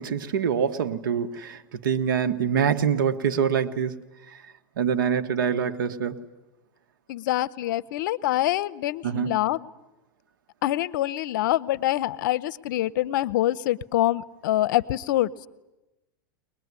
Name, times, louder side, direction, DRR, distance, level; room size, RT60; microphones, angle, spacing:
voice 1, 0.0-4.0 4.8-6.2 9.0-9.4, right 7 dB, 85° right, 10 dB, 1.4 m, -25 dB
voice 2, 7.1-9.7 10.6-15.3, left 14 dB, 70° left, 19 dB, 0.8 m, -25 dB
22.5 x 20.5 x 9.7 m, 1.0 s
supercardioid pair, 130°, 11 cm